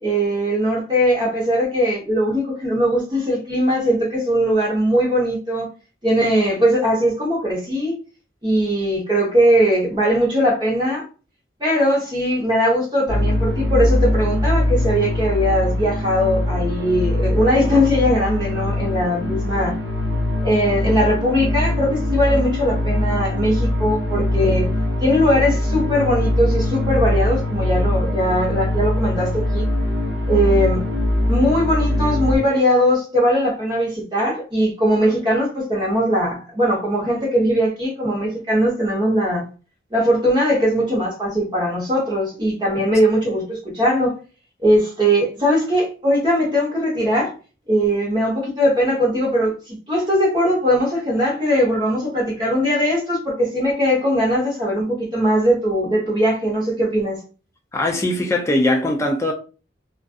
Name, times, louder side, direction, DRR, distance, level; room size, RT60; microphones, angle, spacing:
voice 1, 0.0-5.7 6.0-7.9 8.4-11.0 11.6-19.7 20.4-24.7 25.0-29.7 30.3-30.9 31.3-39.4 39.9-44.2 44.6-47.3 47.7-57.2, equal, 25° right, 0.9 m, -20 dB
sound 1, 13.1-32.4, left 1 dB, 60° right, 0.8 m, -22 dB
voice 2, 57.7-59.3, left 1 dB, 15° left, 0.3 m, -20 dB
2.4 x 2.4 x 2.3 m
head